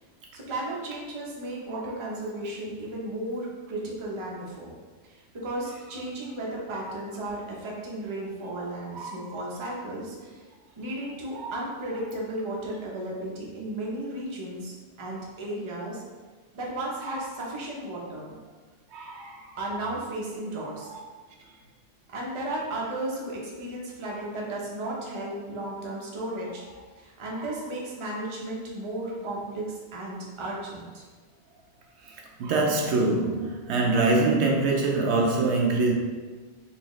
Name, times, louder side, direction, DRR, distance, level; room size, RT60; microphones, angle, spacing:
voice 1, 0.3-4.8 5.0-10.5 10.8-16.0 16.5-18.4 19.6-20.9 22.1-26.6 27.0-31.1, right 1 dB, 30° right, -4 dB, 0.6 m, -34 dB
voice 2, 18.9-19.4 32.4-35.9, right 3 dB, 75° right, 0 dB, 0.9 m, -24 dB
4.0 x 2.8 x 3.1 m, 1.4 s
omnidirectional pair, 1.2 m